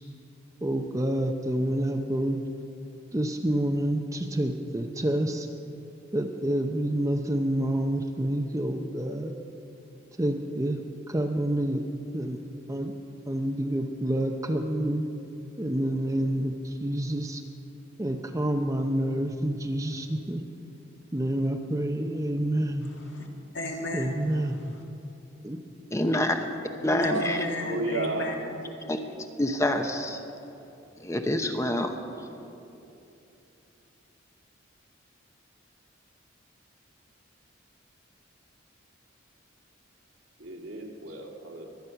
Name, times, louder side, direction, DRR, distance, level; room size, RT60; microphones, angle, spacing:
voice 1, 0.6-2.4 3.1-5.5 6.1-9.3 10.2-10.8 11.1-11.8 12.1-12.4 12.7-12.9 13.3-15.1 15.6-17.4 18.0-20.4 21.1-22.9 23.9-24.7 25.4-25.6, right 1 dB, 15° right, 4 dB, 0.6 m, -28 dB
voice 2, 22.8-23.3 23.5-24.2 27.0-28.9, left 2 dB, 65° left, 1 dB, 2.1 m, -35 dB
voice 3, 25.9-26.4 26.8-27.5 28.9-29.0 29.4-30.2 31.0-32.3, left 1 dB, 15° left, 5 dB, 0.8 m, -27 dB
voice 4, 27.0-28.3 29.7-29.8 40.4-41.7, right 2 dB, 75° right, 1 dB, 2.1 m, -33 dB
23.5 x 9.5 x 5.8 m, 2.9 s
head